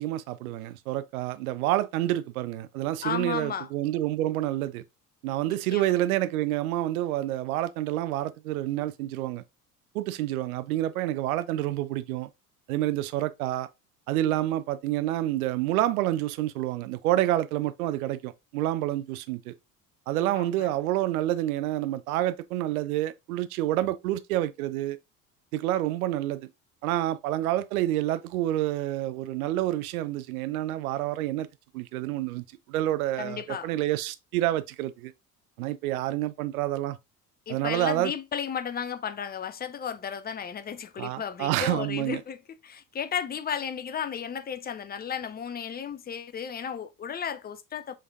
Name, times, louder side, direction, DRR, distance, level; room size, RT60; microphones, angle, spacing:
voice 1, 0.0-4.8 5.2-9.4 9.9-12.3 12.7-13.7 14.1-19.5 20.1-25.0 25.5-26.5 26.8-31.5 31.7-35.1 35.6-37.0 37.5-38.1 41.0-42.2, right 14 dB, 70° right, 0.6 m, -28 dB
voice 2, 3.0-3.7 5.7-5.9 20.2-20.7 33.2-33.7 37.5-42.4 42.6-47.9, left 7 dB, 20° left, 0.5 m, -34 dB
5.7 x 3.3 x 2.4 m
figure-of-eight pair, 60°, 45 cm